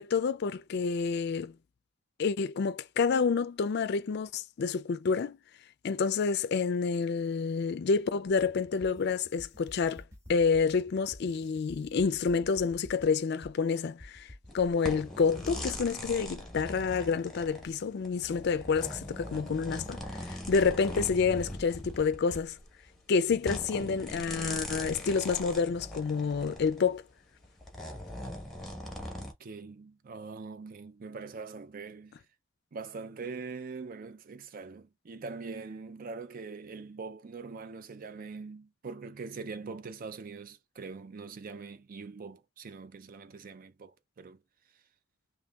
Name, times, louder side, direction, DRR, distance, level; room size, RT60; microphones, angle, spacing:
voice 1, 0.0-1.5 2.2-5.4 5.8-10.0 10.3-14.3 14.5-22.6 23.1-27.0, left 5 dB, 55° left, 0.4 m, -28 dB
sound 1, 8.3-13.6 14.0-14.6, left 1 dB, 15° right, 1.5 m, -50 dB
sound 2, 14.5-26.8 27.4-29.3, left 1 dB, ahead, 1.1 m, -40 dB
voice 2, 29.2-32.1 32.7-44.4, right 4 dB, 45° right, 0.4 m, -43 dB
5.1 x 2.9 x 2.3 m
head